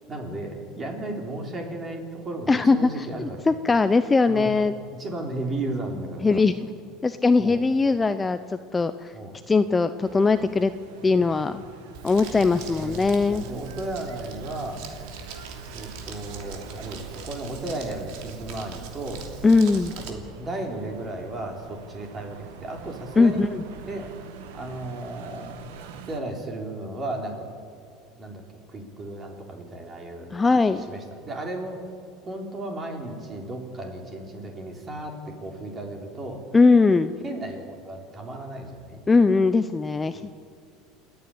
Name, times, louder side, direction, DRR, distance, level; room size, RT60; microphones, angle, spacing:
voice 1, 0.1-3.4 4.3-4.6 5.0-6.4 7.4-7.6 9.1-9.3 11.1-11.6 12.3-14.8 15.7-19.3 19.9-23.4 23.8-24.1 24.5-25.6 26.1-27.5 28.2-28.4 28.7-30.3 30.9-31.8 32.3-36.4 37.2-39.0, right 2 dB, 25° right, 2 dB, 3.7 m, -34 dB
voice 2, 2.5-4.7 6.2-6.7 7.0-9.1 9.5-10.7 11.0-11.6 12.0-13.4 19.4-19.9 23.2-23.6 30.3-30.8 36.5-37.1 39.1-40.2, left 4 dB, 15° left, 11 dB, 0.5 m, -20 dB
sound 1, 10.0-26.2, right 6 dB, 90° right, 1.8 m, -46 dB
Crumpling crinkling, 11.9-20.1, right 5 dB, 70° right, 2.9 m, -41 dB
28.5 x 9.5 x 9.8 m, 2.3 s
supercardioid pair, 135°, 0 cm